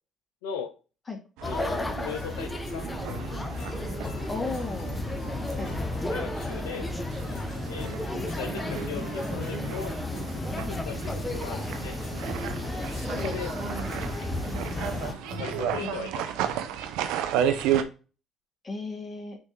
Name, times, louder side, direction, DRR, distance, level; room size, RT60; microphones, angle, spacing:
voice 1, 0.4-0.7 1.4-2.8 5.5-5.7 6.1-6.9 7.7-10.0 10.5-12.0 13.1-13.6 15.0-16.5, left 6 dB, 90° left, 5 dB, 0.6 m, -38 dB
sound 1, 1.4-15.1, left 2 dB, 20° left, 1.0 m, -33 dB
sound 2, 1.4-17.8, right 9 dB, 80° right, 0.7 m, -34 dB
sound 3, 2.2-15.6, left 3 dB, 65° left, 1.7 m, -44 dB
voice 2, 4.3-5.0 5.6-5.7 15.8-16.0 18.6-19.4, left 3 dB, 35° left, 0 dB, 2.3 m, -35 dB
6.2 x 3.5 x 4.4 m, 0.34 s
hypercardioid pair, 60°, 0 cm